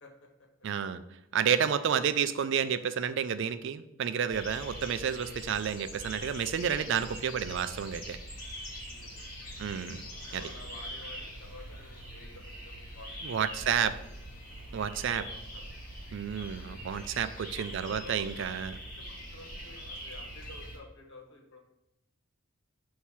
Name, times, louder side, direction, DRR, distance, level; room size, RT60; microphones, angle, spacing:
voice 1, 0.6-1.0 1.3-8.2 9.6-10.0 10.3-10.5 13.2-13.9 14.7-15.3 16.1-18.7, right 8 dB, 60° right, 12 dB, 0.3 m, -30 dB
voice 2, 1.6-1.9 8.8-9.2 10.3-13.1 13.6-14.0 15.3-15.6 16.3-16.8 17.5-18.5 19.0-21.6, left 2 dB, 55° left, 1 dB, 1.3 m, -51 dB
sound 1, 4.3-20.8, equal, 40° left, 1.6 m, -43 dB
6.3 x 2.8 x 5.6 m, 0.84 s
head